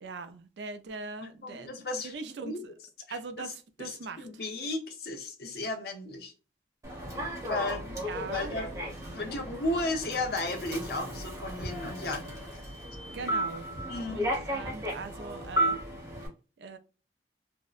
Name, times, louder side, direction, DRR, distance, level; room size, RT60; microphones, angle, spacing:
voice 1, 0.0-1.7 2.0-2.7 3.1-4.3 8.0-8.6 13.1-13.7 14.1-15.8 16.6-16.8, right 4 dB, 75° right, 0.4 m, -40 dB
voice 2, 1.4-2.5 3.1-3.5 3.8-6.3 7.1-8.0 8.3-8.7 9.1-12.6 13.9-14.2, left 2 dB, 60° left, 0.7 m, -35 dB
Human voice / Subway metro underground, 6.8-16.3, right 1 dB, 20° right, 0.8 m, -34 dB
2.6 x 2.0 x 2.3 m
head